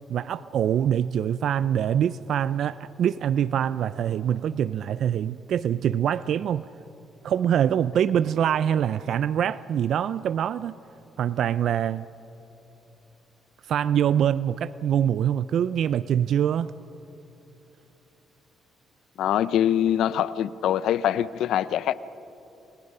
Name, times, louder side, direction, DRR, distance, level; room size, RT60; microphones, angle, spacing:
voice 1, 0.1-6.7 7.2-10.7 11.2-12.1 13.7-16.7, right 9 dB, 70° right, 0.4 m, -24 dB
voice 2, 19.2-21.9, left 10 dB, 80° left, 0.6 m, -24 dB
29.5 x 21.5 x 5.5 m
cardioid pair, 90°, 0 cm